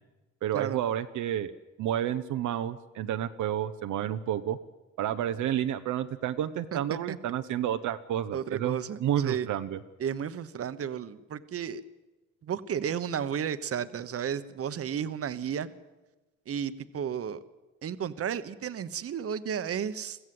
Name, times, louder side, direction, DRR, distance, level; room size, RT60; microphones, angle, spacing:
voice 1, 0.4-1.5 1.8-4.6 5.0-9.8, right 11 dB, 75° right, 8 dB, 0.9 m, -30 dB
voice 2, 6.7-7.2 8.3-9.5 10.0-11.8 12.4-15.7 16.5-17.4 17.8-20.2, right 8 dB, 50° right, 13 dB, 1.1 m, -33 dB
22.5 x 15.0 x 7.8 m, 1.1 s
cardioid pair, 90°, 30 cm